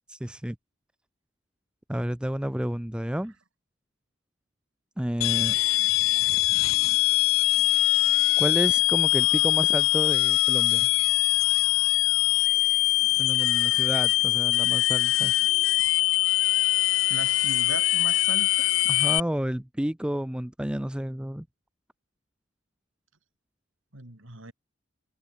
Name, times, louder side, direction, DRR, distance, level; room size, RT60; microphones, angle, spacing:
voice 1, 0.1-0.6 1.9-3.3 5.0-5.6 8.4-10.9 13.2-15.3 18.9-21.5, equal, 5° right, 0.5 m, -30 dB
sound 1, 5.2-19.2, left 18 dB, 85° left, 0.4 m, -22 dB
voice 2, 17.1-18.7 23.9-24.5, right 2 dB, 80° right, 3.8 m, -38 dB
head